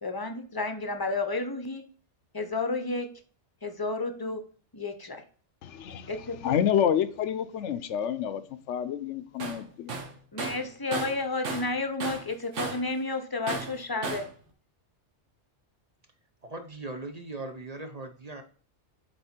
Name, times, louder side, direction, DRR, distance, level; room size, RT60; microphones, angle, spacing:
voice 1, 0.0-1.8 2.3-3.1 3.6-4.4 4.7-5.2 6.1-6.6 10.3-14.2, left 3 dB, 20° left, 0.7 m, -31 dB
voice 2, 5.6-6.1 6.4-8.4 8.7-9.9, left 9 dB, 80° left, 0.9 m, -28 dB
Tools, 9.4-9.6 9.9-11.7 12.0-12.9 13.5-14.3, right 4 dB, 90° right, 1.4 m, -34 dB
voice 3, 16.4-18.4, right 2 dB, 40° right, 0.7 m, -39 dB
7.6 x 4.1 x 4.4 m
omnidirectional pair, 1.2 m